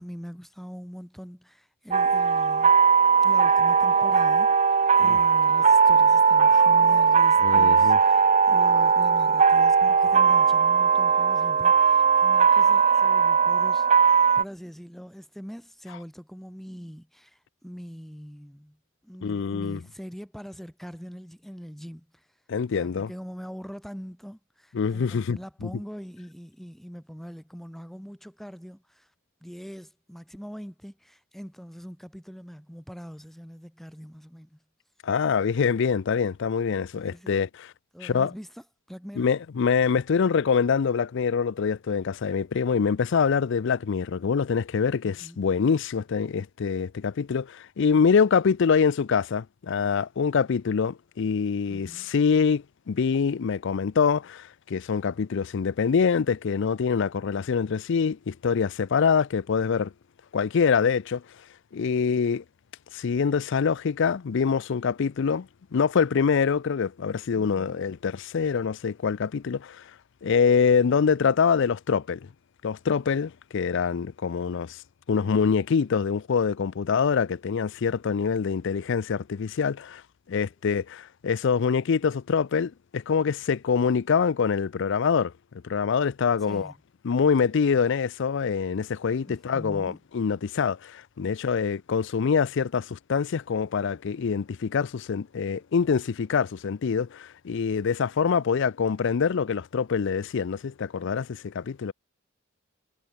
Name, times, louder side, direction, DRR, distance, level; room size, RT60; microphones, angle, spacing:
voice 1, 0.0-2.7 3.2-18.8 19.0-22.2 22.7-29.1 29.4-34.6 36.9-37.5 37.9-38.5 38.9-39.3 45.0-45.4 51.7-52.1 86.5-86.7 89.2-90.0, equal, ahead, 4.7 m, -42 dB
sound 1, 1.9-14.4, right 6 dB, 35° right, 1.0 m, -19 dB
voice 2, 7.4-8.0 19.2-19.8 22.5-23.1 24.7-25.7 35.0-37.7 38.0-38.3 39.2-59.9 60.3-61.2 61.7-62.4 62.9-69.8 70.2-72.3 72.6-74.8 75.1-80.0 80.3-85.3 85.6-86.7 87.0-101.9, left 6 dB, 65° left, 0.4 m, -25 dB
head